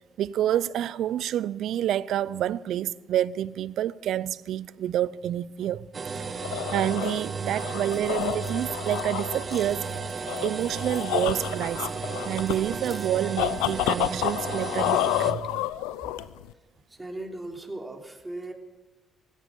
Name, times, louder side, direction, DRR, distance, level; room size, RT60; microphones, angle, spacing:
voice 1, 0.2-5.9 6.4-10.1 10.4-11.9 12.2-15.6, right 11 dB, 75° right, 0.5 m, -28 dB
sound 1, 5.9-15.3, right 5 dB, 45° right, 1.2 m, -34 dB
sound 2, 6.2-16.5, left 14 dB, 90° left, 0.5 m, -30 dB
sound 3, 7.6-13.7, equal, 5° right, 1.4 m, -54 dB
voice 2, 16.4-18.5, right 2 dB, 20° right, 3.4 m, -40 dB
16.5 x 12.0 x 6.9 m
supercardioid pair, 55°, 0 cm